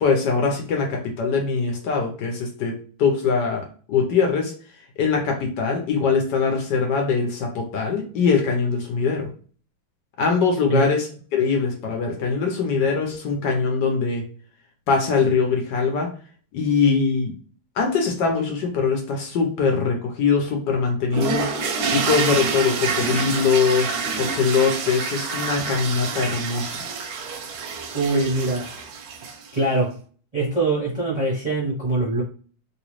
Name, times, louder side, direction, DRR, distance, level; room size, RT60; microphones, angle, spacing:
voice 1, 0.0-4.5 5.0-9.3 10.2-14.2 14.9-16.1 16.5-17.3 17.8-21.5 21.9-26.8, left 5 dB, 65° left, 2 dB, 1.4 m, -22 dB
sound 1, 21.1-29.6, right 5 dB, 65° right, 1.0 m, -27 dB
voice 2, 27.9-28.7 29.5-29.9 30.3-32.2, right 2 dB, 30° right, -7 dB, 0.8 m, -23 dB
3.1 x 3.0 x 3.0 m, 0.41 s
omnidirectional pair, 2.1 m